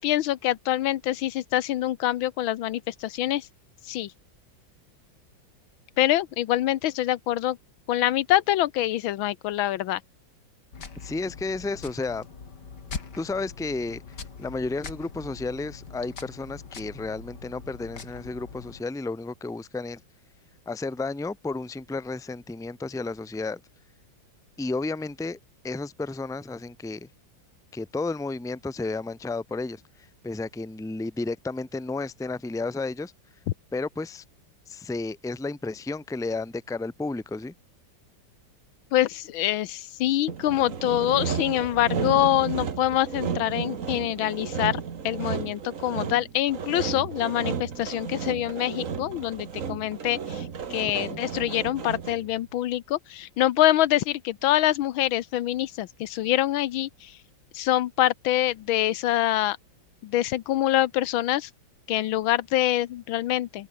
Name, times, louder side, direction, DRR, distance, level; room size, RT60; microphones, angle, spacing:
voice 1, 0.0-3.5 3.8-4.1 6.0-7.6 7.9-10.0 38.9-57.1 57.5-59.6 60.0-61.5 61.9-63.7, left 14 dB, 85° left, 1.6 m, -25 dB
sound 1, 10.7-18.8, left 5 dB, 55° left, 3.1 m, -42 dB
voice 2, 11.0-12.3 13.2-14.0 14.4-20.0 20.7-23.6 24.6-25.4 25.6-27.1 27.7-29.8 30.2-33.1 33.7-34.2 34.7-37.5 50.9-51.2, left 3 dB, ahead, 0.8 m, -32 dB
Sawing, 40.3-52.3, right 6 dB, 45° right, 1.7 m, -33 dB
omnidirectional pair, 2.1 m